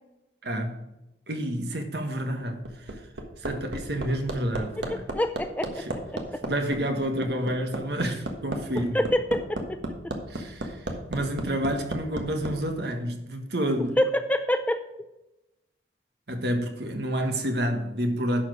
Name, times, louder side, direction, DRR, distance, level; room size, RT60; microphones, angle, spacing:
voice 1, 0.4-0.8 1.3-2.9 3.4-5.0 5.8-5.9 6.4-9.0 10.3-10.8 11.1-14.0 16.3-18.4, right 1 dB, 65° right, 1.5 m, -29 dB
Hammer, 2.4-12.5 13.9-14.0, right 1 dB, 80° right, 1.4 m, -33 dB
voice 2, 4.8-5.8 6.1-6.4 8.9-10.1 14.0-14.8, equal, 10° left, 0.4 m, -27 dB
11.5 x 4.7 x 6.1 m
head